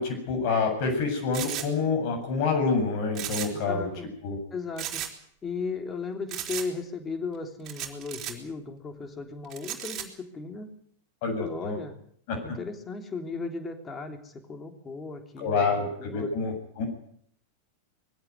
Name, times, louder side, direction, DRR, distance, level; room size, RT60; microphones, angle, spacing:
voice 1, 0.0-3.9 4.2-4.4 11.2-11.8 12.3-12.4 15.4-16.9, left 4 dB, 45° left, 3 dB, 7.7 m, -27 dB
sound 1, 1.3-1.7 3.1-3.7 3.9-4.0 4.8-5.1 6.3-6.7 7.7-8.3 9.5-10.0, right 11 dB, 30° right, 4.1 m, -35 dB
voice 2, 3.5-4.1 4.5-5.0 5.4-10.7 11.4-12.0 12.4-16.3, left 4 dB, 20° left, 6 dB, 3.3 m, -36 dB
21.5 x 16.0 x 9.6 m, 0.64 s
figure-of-eight pair, 90°, 0 cm